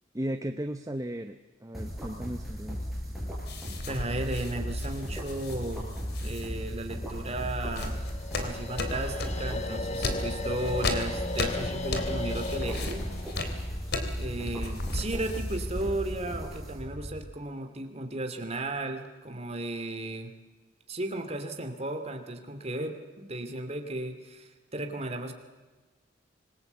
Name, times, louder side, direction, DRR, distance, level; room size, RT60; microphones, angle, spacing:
voice 1, 0.1-2.9, right 1 dB, 15° right, 7 dB, 0.8 m, -35 dB
sound 1, 1.7-17.2, equal, ahead, 6.4 m, -36 dB
sound 2, 3.5-6.5 7.1-9.5 9.9-16.1, left 2 dB, 55° left, 3.1 m, -36 dB
voice 2, 3.9-8.0 8.4-13.4 14.1-20.3 20.9-25.3, right 2 dB, 35° right, 6 dB, 2.7 m, -35 dB
sound 3, 7.8-14.9, left 2 dB, 35° left, 1.2 m, -38 dB
25.5 x 21.0 x 8.2 m, 1.3 s
head